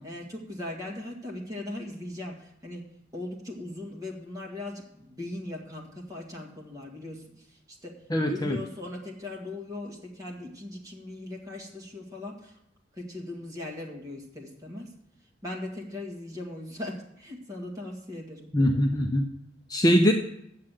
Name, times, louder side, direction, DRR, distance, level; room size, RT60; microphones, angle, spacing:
voice 1, 0.0-8.0 8.3-12.6 12.9-14.9 15.4-18.5, left 2 dB, 20° right, -1 dB, 2.0 m, -39 dB
voice 2, 8.1-8.6 18.5-19.2 19.7-20.1, equal, 20° left, 3 dB, 0.6 m, -22 dB
8.7 x 7.6 x 7.6 m, 0.79 s
head